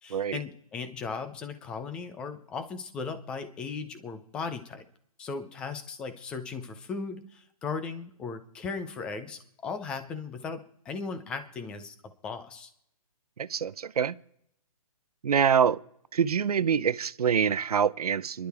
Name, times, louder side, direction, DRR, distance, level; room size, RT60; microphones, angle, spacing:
voice 1, 0.0-4.9 5.2-11.9 12.2-12.7, left 5 dB, 5° left, 0.5 m, -37 dB
voice 2, 13.4-14.2 15.2-15.8 16.1-18.5, right 7 dB, 90° right, 0.7 m, -25 dB
27.5 x 11.5 x 3.5 m
hypercardioid pair, 170°, 19 cm